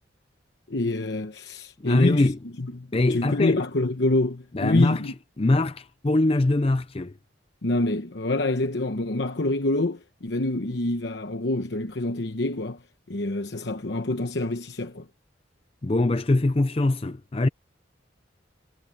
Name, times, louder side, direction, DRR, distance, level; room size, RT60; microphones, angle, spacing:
voice 1, 0.7-2.3 2.6-5.1 7.6-12.8 13.1-15.1, left 2 dB, 65° left, 1.0 m, -26 dB
voice 2, 1.8-2.4 2.9-3.6 4.5-5.0 5.4-7.1 15.8-17.5, left 2 dB, 30° left, 0.5 m, -22 dB
head